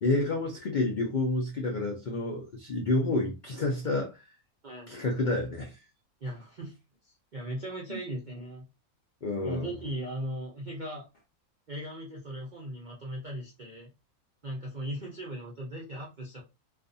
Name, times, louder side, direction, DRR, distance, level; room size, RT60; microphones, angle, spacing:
voice 1, 0.0-4.2 4.9-5.8 7.9-8.0 9.2-9.7, left 2 dB, 75° left, 0.4 m, -29 dB
voice 2, 6.2-6.7 7.0-8.6 9.4-11.0 11.7-13.9 14.4-16.4, right 1 dB, 50° right, 0.5 m, -38 dB
2.4 x 2.4 x 2.5 m
omnidirectional pair, 1.5 m